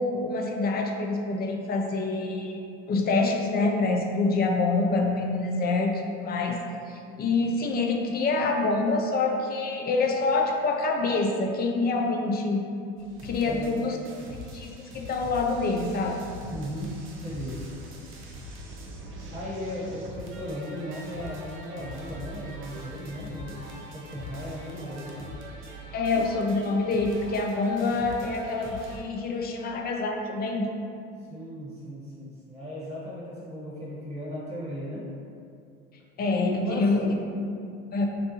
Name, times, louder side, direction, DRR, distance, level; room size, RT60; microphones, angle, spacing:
voice 1, 0.0-6.6 6.9-12.7 13.2-14.0 14.5-16.2 25.9-30.7 36.2-37.1 37.9-38.1, left 3 dB, 30° left, 2 dB, 0.3 m, -26 dB
sound 1, 13.0-29.0, equal, 40° right, 0.6 m, -42 dB
voice 2, 16.5-16.9 17.2-17.5 19.3-25.2 31.3-35.0 36.6-36.9, equal, 20° right, -7 dB, 1.4 m, -37 dB
3.7 x 2.3 x 2.8 m, 2.5 s
supercardioid pair, 90°, 33 cm